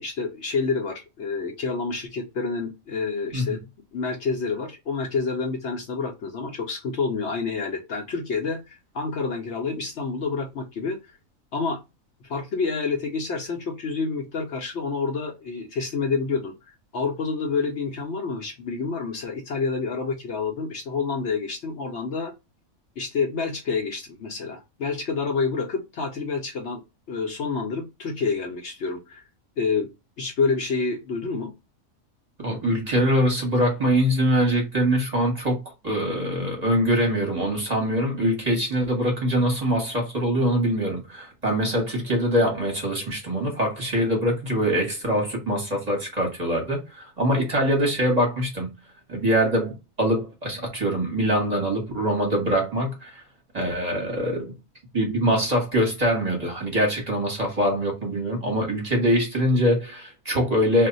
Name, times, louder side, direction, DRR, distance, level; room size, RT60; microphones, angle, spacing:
voice 1, 0.0-3.6 3.9-11.0 11.5-11.8 12.2-22.3 23.0-26.8 27.1-29.2 29.6-29.9 30.2-31.5, left 4 dB, 65° left, 0.8 m, -28 dB
voice 2, 32.4-35.6 35.8-48.7 49.1-53.2 53.5-54.5 54.9-60.9, equal, 35° right, 0.9 m, -23 dB
2.4 x 2.1 x 3.8 m
omnidirectional pair, 1.5 m